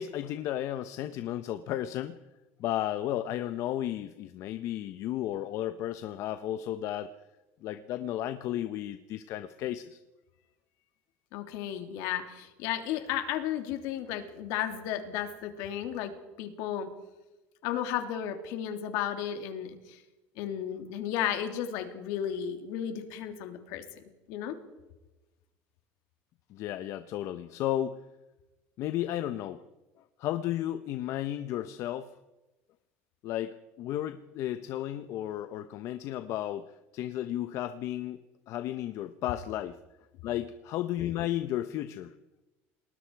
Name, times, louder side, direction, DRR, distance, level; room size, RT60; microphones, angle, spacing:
voice 1, 0.0-2.2 2.6-7.1 7.6-10.0 26.5-28.0 28.8-29.6 30.2-32.1 33.2-38.2 38.5-39.8 40.2-42.1, left 12 dB, 60° left, 10 dB, 1.0 m, -33 dB
voice 2, 11.3-16.9 17.6-20.0 20.4-24.6, left 10 dB, 80° left, 6 dB, 3.2 m, -34 dB
29.5 x 20.0 x 4.8 m, 1.1 s
cardioid pair, 125°, 6 cm